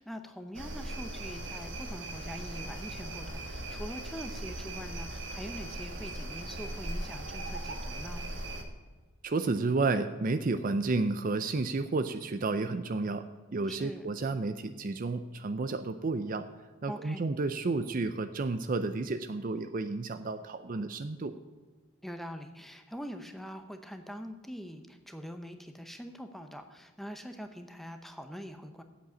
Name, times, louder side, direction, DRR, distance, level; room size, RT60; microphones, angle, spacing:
voice 1, 0.0-8.2 13.7-14.1 16.9-17.2 22.0-28.8, equal, ahead, 7 dB, 0.7 m, -43 dB
sound 1, 0.5-8.6, right 1 dB, 55° right, 1.4 m, -39 dB
voice 2, 9.2-13.2 13.5-16.5 16.8-21.3, right 3 dB, 40° right, 10 dB, 0.4 m, -31 dB
8.2 x 7.7 x 8.4 m, 1.3 s
head